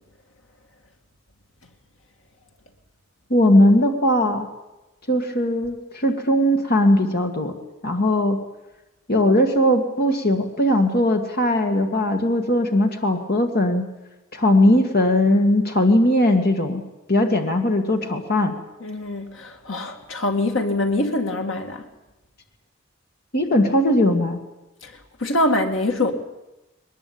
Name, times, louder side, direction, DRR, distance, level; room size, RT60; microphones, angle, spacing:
voice 1, 3.3-4.5 5.1-7.5 7.8-8.4 9.1-13.8 14.3-16.8 17.1-18.6 23.3-24.4, left 1 dB, 50° left, 2.1 m, -19 dB
voice 2, 18.8-21.8 24.8-24.9 25.2-26.1, left 2 dB, 75° left, 2.3 m, -24 dB
22.0 x 20.0 x 8.7 m
head